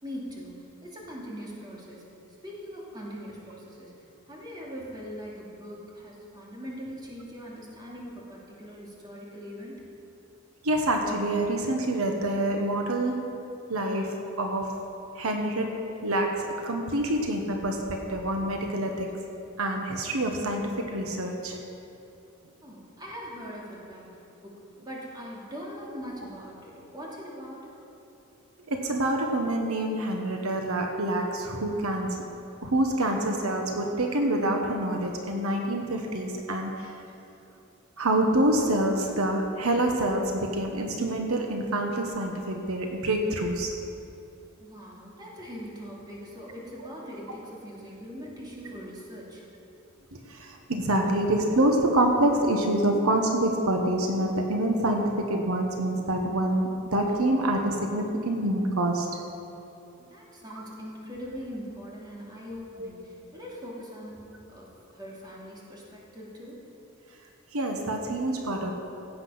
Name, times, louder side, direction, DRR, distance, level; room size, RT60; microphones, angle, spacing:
voice 1, 0.0-2.1 2.4-3.9 4.3-9.9 22.6-24.1 24.4-27.7 44.6-49.4 60.0-64.2 64.5-66.6, equal, 20° right, -4 dB, 2.6 m, -41 dB
voice 2, 10.6-13.3 13.7-14.8 15.2-15.7 16.0-19.1 19.6-21.6 28.7-32.2 32.6-36.9 38.0-43.7 50.1-59.1 62.8-62.9 67.5-68.7, right 1 dB, 85° right, 2 dB, 1.2 m, -26 dB
16.0 x 8.2 x 5.7 m, 2.7 s
head